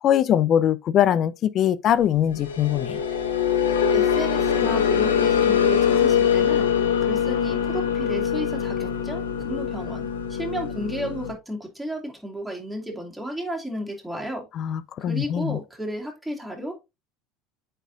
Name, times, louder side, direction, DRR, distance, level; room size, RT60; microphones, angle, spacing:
voice 1, 0.0-3.0 14.6-15.6, left 10 dB, 45° left, 0.4 m, -22 dB
sound 1, 2.3-11.3, left 8 dB, 80° left, 0.8 m, -23 dB
voice 2, 3.9-6.7 7.0-14.4 15.0-16.7, equal, ahead, 2.3 m, -33 dB
8.8 x 4.4 x 2.5 m
hypercardioid pair, 70°, 0 cm